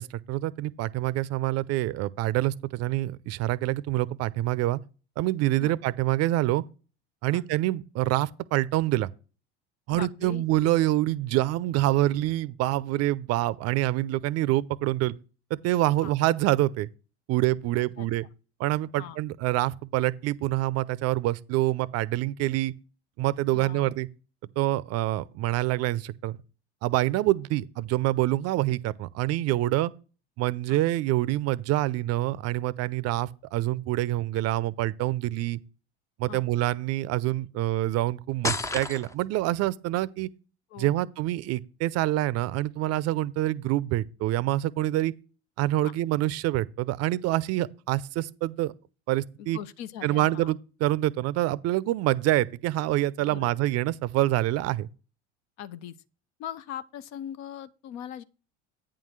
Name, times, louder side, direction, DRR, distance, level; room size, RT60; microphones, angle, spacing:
voice 1, 0.0-4.8 5.2-6.6 7.2-9.1 9.9-15.1 15.5-16.9 17.3-18.2 18.6-22.7 23.2-24.1 24.6-26.4 26.8-29.9 30.4-35.6 36.2-40.3 40.8-45.1 45.6-48.7 49.1-49.6 50.0-54.9, right 16 dB, 50° right, 0.6 m, -26 dB
voice 2, 9.9-10.4 14.4-14.5 16.0-16.1 18.0-18.1 19.0-19.2 23.5-24.0 30.7-30.8 36.3-36.4 40.7-41.1 45.8-45.9 49.4-50.6 53.2-53.5 55.6-56.0 56.4-58.2, left 10 dB, 55° left, 0.7 m, -40 dB
sound 1, 38.4-39.4, left 2 dB, 10° left, 0.5 m, -30 dB
8.9 x 3.8 x 6.4 m
hypercardioid pair, 75°, 34 cm